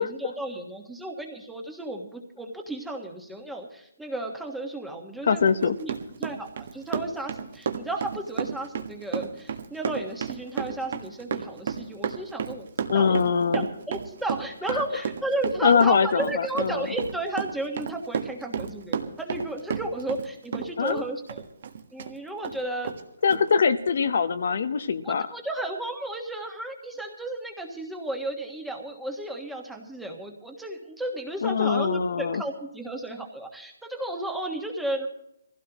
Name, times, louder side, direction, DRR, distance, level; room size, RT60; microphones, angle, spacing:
voice 1, 0.0-5.9 6.2-13.2 13.5-21.4 21.9-22.9 25.0-35.1, right 1 dB, ahead, 2 dB, 1.5 m, -33 dB
voice 2, 5.2-5.8 12.9-13.7 14.7-14.8 15.6-16.9 20.8-21.0 23.2-25.3 31.4-32.4, left 6 dB, 55° left, 11 dB, 0.9 m, -23 dB
Run, 5.5-20.3 20.5-22.1 22.4-22.6 22.8-23.0 23.3-23.4, right 7 dB, 45° right, 1.5 m, -32 dB
22.5 x 16.0 x 3.0 m, 0.77 s
hypercardioid pair, 170°, 0 cm